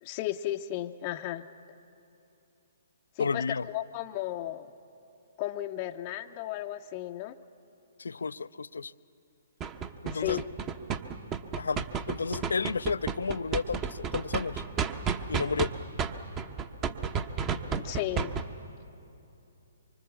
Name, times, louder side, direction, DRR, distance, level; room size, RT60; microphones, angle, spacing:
voice 1, 0.0-1.5 3.2-4.7 5.4-7.4 10.1-10.5 17.7-18.3, left 14 dB, 35° left, 6 dB, 0.6 m, -34 dB
voice 2, 3.2-3.7 8.0-8.9 10.0-10.4 11.6-14.6 15.3-15.7, left 5 dB, 75° left, 17 dB, 0.5 m, -32 dB
sound 1, 9.6-15.7 16.0-18.4, right 6 dB, 25° right, 1.0 m, -31 dB
25.0 x 24.5 x 7.2 m, 2.8 s
figure-of-eight pair, 130°, 0 cm